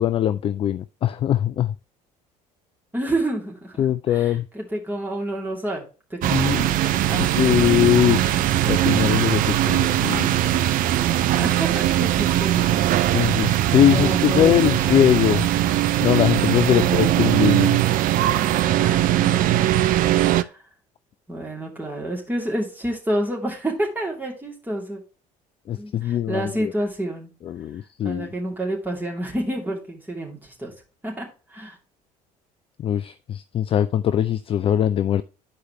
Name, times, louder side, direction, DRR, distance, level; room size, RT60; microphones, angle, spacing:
voice 1, 0.0-1.7 3.8-4.5 6.2-6.8 7.2-8.2 8.7-10.4 13.1-15.4 16.0-17.8 25.7-26.7 27.4-28.3 32.8-35.2, left 10 dB, 25° left, 0.3 m, -21 dB
voice 2, 2.9-3.8 4.1-5.8 6.1-7.7 9.6-9.9 11.4-13.3 13.9-15.0 16.7-17.2 18.8-19.3 20.2-20.6 21.3-25.0 25.7-27.3 28.0-30.7 31.0-31.8, right 1 dB, 10° right, 2.7 m, -29 dB
sound 1, 6.2-20.4, right 13 dB, 40° right, 0.5 m, -20 dB
10.5 x 4.7 x 3.2 m
figure-of-eight pair, 60°, 21 cm